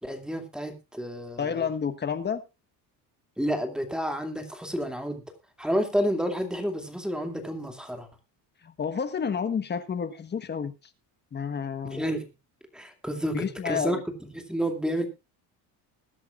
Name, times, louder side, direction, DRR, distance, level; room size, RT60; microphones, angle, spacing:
voice 1, 0.0-1.7 3.4-5.2 5.6-8.1 11.8-12.3 12.7-15.1, equal, ahead, 5 dB, 2.5 m, -30 dB
voice 2, 1.4-2.4 8.6-10.7 11.3-12.0 13.3-14.0, left 6 dB, 25° left, 10 dB, 1.3 m, -30 dB
21.5 x 10.5 x 2.5 m, 0.26 s
cardioid pair, 150°, 41 cm